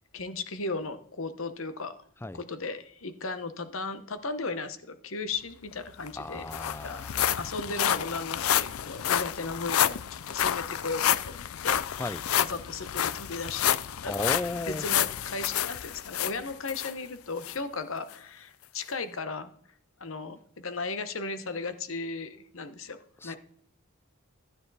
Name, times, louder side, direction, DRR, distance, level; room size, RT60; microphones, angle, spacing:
voice 1, 0.1-1.9 2.3-6.5 6.8-13.8 14.0-14.2 14.5-19.6 20.0-23.0 23.2-23.4, left 3 dB, 70° left, 1.1 m, -36 dB
sound 1, 5.7-5.8 6.1-16.9 17.4-17.6 18.1-18.2, left 10 dB, 85° left, 0.5 m, -29 dB
voice 2, 6.2-7.1 12.0-12.2 14.1-14.9 23.2-23.4, left 2 dB, 10° left, 0.4 m, -34 dB
12.5 x 9.8 x 4.1 m
head